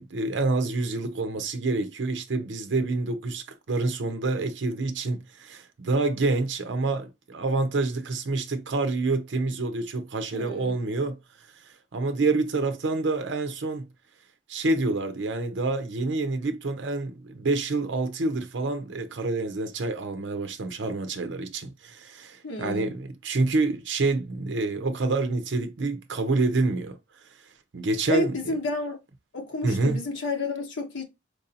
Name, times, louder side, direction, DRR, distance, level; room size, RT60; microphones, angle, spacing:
voice 1, 0.0-11.2 11.9-13.9 14.5-27.0 27.7-28.5 29.6-30.0, right 3 dB, 80° right, 0.6 m, -27 dB
voice 2, 10.3-10.8 22.4-22.9 28.1-29.0 29.3-31.1, left 2 dB, 90° left, 1.0 m, -30 dB
4.5 x 2.7 x 2.6 m
head